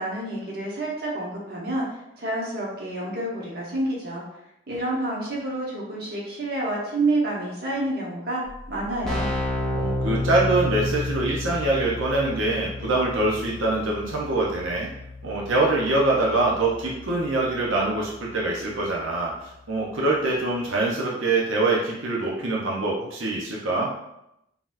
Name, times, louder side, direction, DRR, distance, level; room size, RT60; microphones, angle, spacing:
voice 1, 0.0-4.2 4.7-9.3, right 2 dB, 50° right, -4 dB, 1.0 m, -28 dB
Keyboard (musical), 8.5-8.6 8.7-19.4, left 2 dB, 5° left, 0.7 m, -32 dB
voice 2, 9.7-14.9 15.2-23.9, right 2 dB, 90° right, -3 dB, 0.8 m, -24 dB
3.9 x 2.9 x 2.6 m, 0.83 s
head